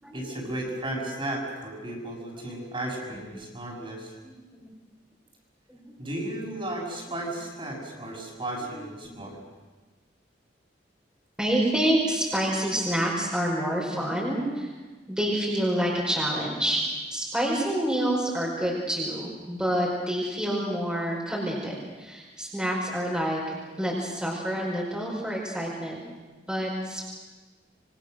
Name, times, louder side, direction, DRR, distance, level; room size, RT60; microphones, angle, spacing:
voice 1, 0.1-4.1 6.0-9.4, right 1 dB, 30° right, -1 dB, 6.1 m, -34 dB
voice 2, 3.1-3.4 4.2-4.7 5.7-6.0 8.6-8.7 9.0-9.1 11.4-14.7 15.1-16.8 17.1-23.4 23.8-26.0 26.5-27.0, right 1 dB, 5° right, -4 dB, 5.1 m, -28 dB
27.0 x 24.0 x 6.5 m, 1.3 s
head